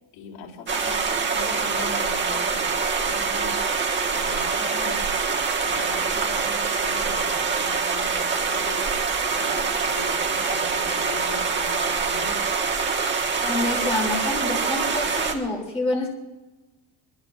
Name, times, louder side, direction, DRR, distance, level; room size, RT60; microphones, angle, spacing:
voice 1, 0.1-5.1 5.5-12.5, left 4 dB, 75° left, -2 dB, 4.2 m, -40 dB
sound 1, 0.7-15.3, right 5 dB, 20° right, 1.4 m, -25 dB
voice 2, 13.4-16.1, left 2 dB, 10° left, -2 dB, 3.0 m, -27 dB
25.5 x 22.5 x 2.5 m, 1.1 s
cardioid pair, 160°, 49 cm